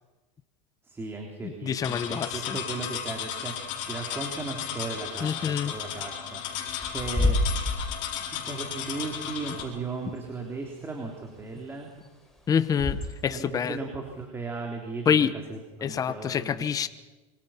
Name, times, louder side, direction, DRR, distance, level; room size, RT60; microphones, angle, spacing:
voice 1, 0.8-7.4 8.3-11.9 13.3-16.7, right 3 dB, 15° right, 1 dB, 3.4 m, -37 dB
voice 2, 1.4-2.6 5.2-5.7 12.5-13.8 15.1-15.3 15.8-16.9, left 7 dB, 20° left, 12 dB, 1.0 m, -26 dB
sound 1, 1.8-9.6, left 9 dB, 55° left, 5.9 m, -35 dB
Bird / Wind, 4.7-13.4, left 2 dB, ahead, 5.0 m, -32 dB
27.0 x 24.5 x 5.8 m, 1.2 s
supercardioid pair, 135°, 17 cm